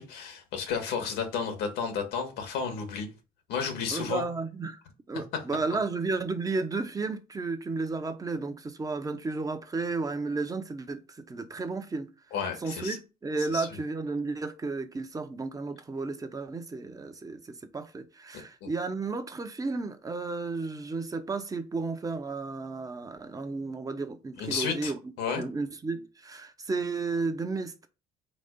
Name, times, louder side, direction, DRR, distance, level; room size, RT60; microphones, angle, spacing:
voice 1, 0.0-3.1 3.5-4.2 5.3-5.4 12.3-13.0 13.5-13.7 18.6-18.7 24.4-25.4, left 6 dB, 90° left, 1.9 m, -32 dB
voice 2, 3.9-4.8 5.1-12.1 12.6-25.0 25.3-27.7, right 3 dB, 20° right, 0.9 m, -33 dB
4.5 x 4.1 x 5.3 m
cardioid pair, 110°, 17 cm